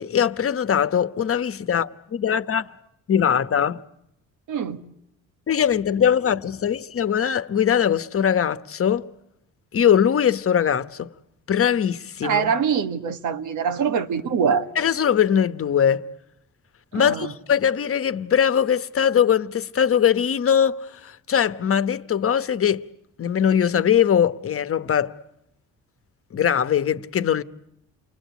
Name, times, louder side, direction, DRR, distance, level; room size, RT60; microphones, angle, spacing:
voice 1, 0.0-2.7 3.1-3.8 5.5-9.1 9.7-11.1 11.5-12.5 14.7-16.1 16.9-22.9 23.2-25.2 26.3-27.4, left 8 dB, 50° left, 1.1 m, -21 dB
voice 2, 4.5-4.8 12.2-14.7 16.9-17.3, right 7 dB, 80° right, 1.7 m, -23 dB
29.5 x 21.5 x 8.3 m
cardioid pair, 90°, 30 cm